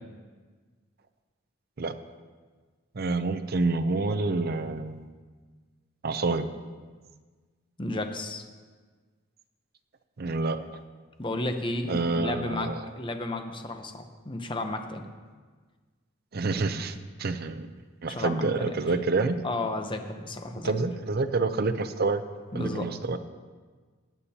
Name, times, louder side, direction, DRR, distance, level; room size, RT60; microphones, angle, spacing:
voice 1, 3.0-5.1 6.0-6.5 10.2-10.6 11.9-12.8 16.3-17.7 18.0-19.4 20.6-22.2 22.5-23.2, right 3 dB, 50° right, 10 dB, 0.6 m, -28 dB
voice 2, 7.8-8.4 11.2-15.1 18.1-18.8 19.4-20.7 22.5-22.9, left 2 dB, 25° left, 6 dB, 0.8 m, -33 dB
17.0 x 9.5 x 2.9 m, 1.5 s
head